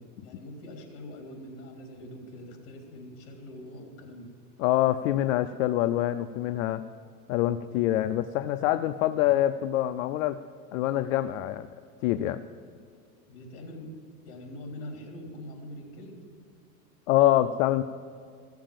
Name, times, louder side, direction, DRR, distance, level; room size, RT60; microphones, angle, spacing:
voice 1, 0.0-4.3 13.3-13.9 14.2-16.2, left 1 dB, 45° left, 1 dB, 3.2 m, -43 dB
voice 2, 4.6-6.8 7.3-10.4 10.7-11.7 12.0-12.4 17.1-17.8, left 13 dB, 60° left, 10 dB, 0.5 m, -25 dB
15.0 x 7.0 x 7.5 m, 2.3 s
supercardioid pair, 155°, 46 cm